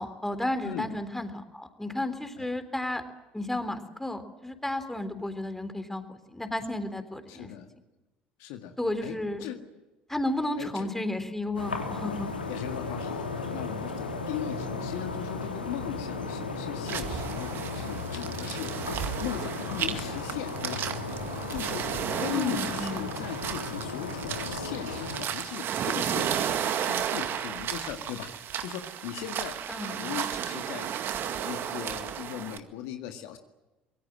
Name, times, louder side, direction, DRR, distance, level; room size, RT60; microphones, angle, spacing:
voice 1, 0.0-3.0 3.3-7.5 8.8-9.4 10.1-12.3 22.3-23.0 29.7-30.2, left 1 dB, 5° left, 9 dB, 3.6 m, -33 dB
voice 2, 0.6-1.0 2.4-2.5 7.3-7.7 8.4-8.8 9.0-9.6 10.6-10.9 12.5-18.9 19.2-21.1 21.5-30.9 31.2-33.4, left 10 dB, 60° left, 6 dB, 1.9 m, -38 dB
sound 1, 11.5-25.2, left 3 dB, 80° left, 2.7 m, -35 dB
sound 2, 16.9-32.6, right 9 dB, 45° right, 2.1 m, -33 dB
25.5 x 23.0 x 7.7 m, 1.1 s
figure-of-eight pair, 60°, 5 cm